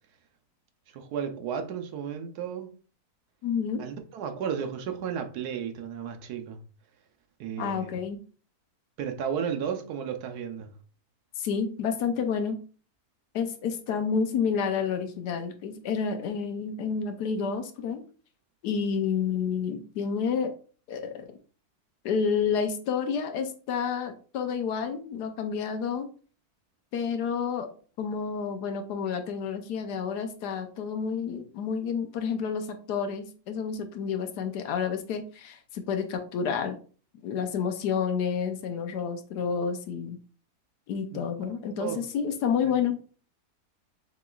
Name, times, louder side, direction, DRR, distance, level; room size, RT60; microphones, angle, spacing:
voice 1, 0.9-2.7 3.8-6.6 7.4-7.9 9.0-10.8 41.1-41.2 41.8-42.1 42.6-42.7, right 7 dB, 75° right, 1.2 m, -33 dB
voice 2, 3.4-3.8 7.6-8.2 11.4-12.6 13.3-18.0 18.6-20.5 20.9-21.3 22.0-26.1 26.9-27.7 28.0-36.8 37.2-40.2 40.9-43.0, left 6 dB, 85° left, 1.3 m, -29 dB
6.8 x 3.1 x 2.3 m
omnidirectional pair, 1.7 m